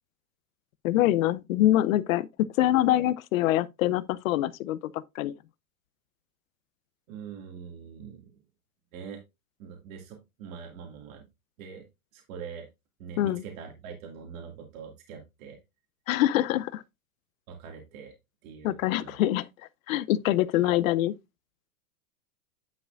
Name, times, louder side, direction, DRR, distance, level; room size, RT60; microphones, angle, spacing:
voice 1, 0.8-5.4 13.2-13.4 16.1-16.8 18.6-19.5 19.9-21.1, left 14 dB, 60° left, 0.7 m, -25 dB
voice 2, 7.1-8.3 8.9-9.2 9.6-11.2 11.6-11.9 12.1-12.7 13.0-15.6 17.5-18.1 18.4-19.1 20.5-20.7, right 6 dB, 60° right, 2.3 m, -43 dB
9.9 x 5.8 x 2.5 m
hypercardioid pair, 135°, 45 cm